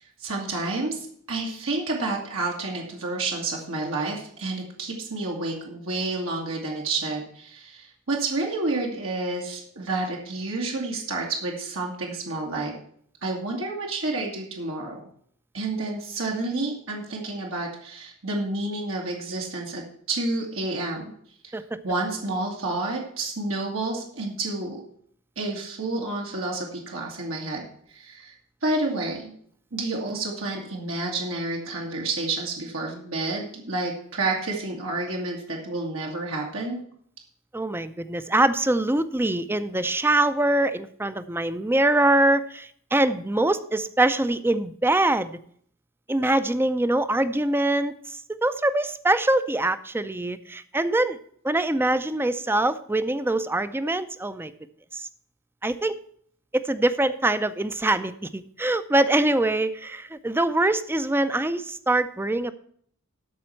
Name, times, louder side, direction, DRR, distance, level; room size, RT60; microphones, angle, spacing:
voice 1, 0.2-12.7 13.2-15.0 15.5-21.1 21.4-21.5 21.8-24.8 25.4-27.6 27.9-28.3 28.6-29.3 29.7-36.8, right 2 dB, 80° right, -1 dB, 1.9 m, -29 dB
voice 2, 37.5-45.4 46.1-51.2 51.4-54.5 54.9-55.1 55.6-56.0 56.5-62.5, right 1 dB, 10° right, 12 dB, 0.5 m, -24 dB
12.5 x 4.3 x 7.7 m, 0.62 s
head